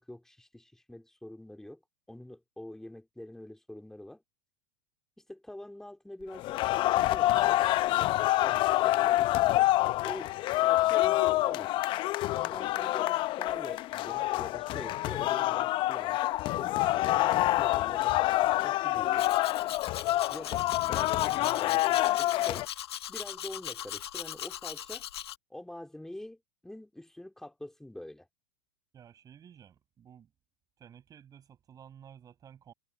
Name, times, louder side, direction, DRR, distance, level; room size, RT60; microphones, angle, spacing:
voice 1, 0.0-1.8 2.1-4.2 5.2-7.6 8.4-9.7 10.0-11.8 12.3-18.2 18.6-19.3 20.3-22.7 23.1-25.0 25.5-28.3, left 1 dB, 5° left, 3.1 m, -45 dB
sound 1, 6.3-22.7, left 16 dB, 40° left, 0.8 m, -27 dB
Domestic sounds home sounds, 19.2-25.4, left 11 dB, 80° left, 1.7 m, -40 dB
voice 2, 28.9-30.3 30.8-32.7, right 9 dB, 25° right, 7.6 m, -53 dB
hypercardioid pair, 110°, 13 cm